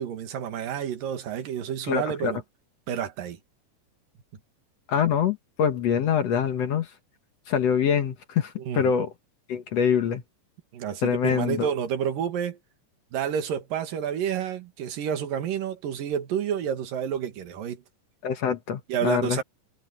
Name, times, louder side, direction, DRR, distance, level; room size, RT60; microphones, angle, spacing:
voice 1, 0.0-2.4 2.9-3.4 8.6-8.9 10.7-12.6 13.1-17.8 18.9-19.4, right 8 dB, 80° right, 3.5 m, -29 dB
voice 2, 1.9-2.3 4.9-6.9 7.5-9.1 9.5-10.2 11.0-11.7 18.2-19.4, left 7 dB, 60° left, 2.1 m, -25 dB
omnidirectional pair, 3.9 m